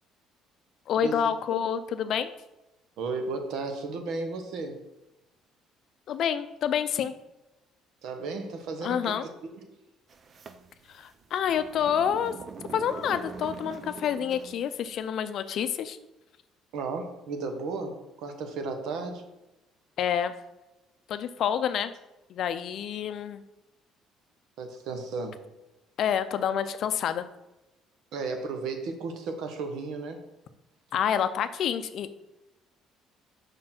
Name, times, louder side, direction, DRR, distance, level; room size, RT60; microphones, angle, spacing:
voice 1, 0.9-2.3 6.1-7.1 8.8-9.3 10.9-12.3 12.7-16.0 20.0-20.3 21.1-21.9 22.3-23.4 26.0-27.3 30.9-32.2, left 8 dB, 55° left, 11 dB, 0.5 m, -28 dB
voice 2, 3.0-4.9 8.0-9.6 16.7-19.2 24.6-25.4 28.1-30.3, right 3 dB, 70° right, 6 dB, 1.1 m, -34 dB
sound 1, 10.1-14.8, right 5 dB, 35° right, 0.4 m, -43 dB
5.2 x 4.4 x 5.9 m, 0.96 s
cardioid pair, 130°, 0 cm